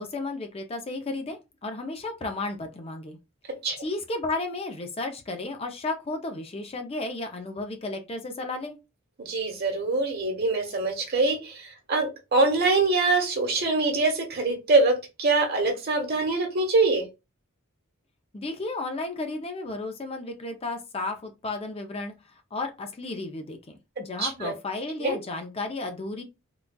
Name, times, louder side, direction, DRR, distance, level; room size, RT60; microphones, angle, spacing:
voice 1, 0.0-3.2 3.8-8.8 18.3-26.2, left 2 dB, 30° left, 0.5 m, -33 dB
voice 2, 9.2-17.0 24.2-24.5 25.0-25.2, right 3 dB, 50° right, 1.1 m, -24 dB
3.8 x 2.3 x 2.2 m
head